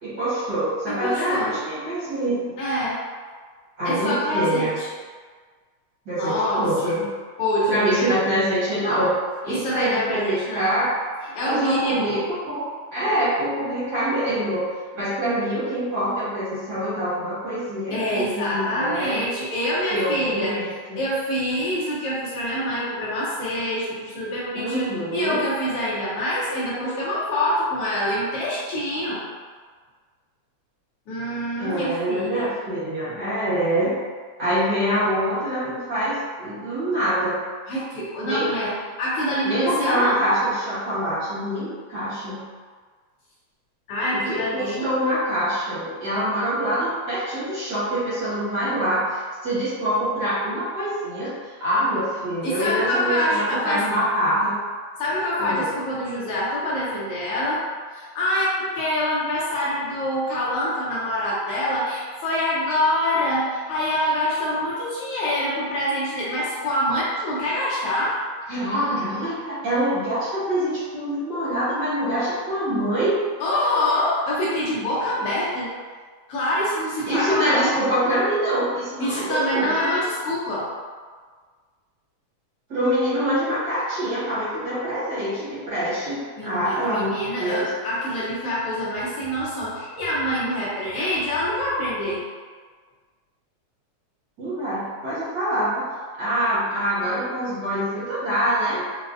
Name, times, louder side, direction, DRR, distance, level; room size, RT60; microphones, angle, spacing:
voice 1, 0.0-2.5 3.8-4.7 6.0-7.1 7.7-9.1 9.4-10.9 11.4-19.2 19.9-21.0 24.5-25.4 31.6-33.9 34.4-37.4 38.2-38.5 39.4-42.4 44.1-54.5 55.4-55.7 68.5-73.2 77.0-79.9 82.7-87.7 94.4-95.9 96.2-98.8, equal, 55° right, -12 dB, 1.2 m, -25 dB
voice 2, 0.9-1.6 2.6-3.0 3.8-4.9 6.2-7.0 7.4-8.4 9.5-10.6 11.3-12.2 17.9-20.6 20.9-29.2 31.1-32.5 37.7-38.7 39.0-40.2 43.9-44.9 52.4-53.8 55.0-57.6 57.9-68.2 73.4-75.7 76.3-77.7 79.0-80.7 86.4-92.2, left 1 dB, 75° left, -7 dB, 1.4 m, -25 dB
4.9 x 2.0 x 2.5 m, 1.5 s
omnidirectional pair, 3.3 m